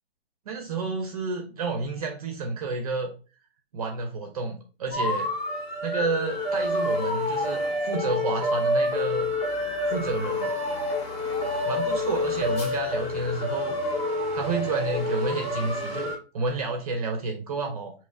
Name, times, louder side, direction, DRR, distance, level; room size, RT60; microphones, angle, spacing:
voice 1, 0.5-3.1 3.7-5.3 5.8-9.3 9.9-10.5 11.7-13.8 14.3-17.9, right 4 dB, 40° right, 4 dB, 0.6 m, -30 dB
sound 1, 4.9-16.2, left 1 dB, 20° left, 0.8 m, -28 dB
5.5 x 2.9 x 2.3 m, 0.35 s
hypercardioid pair, 165°, 31 cm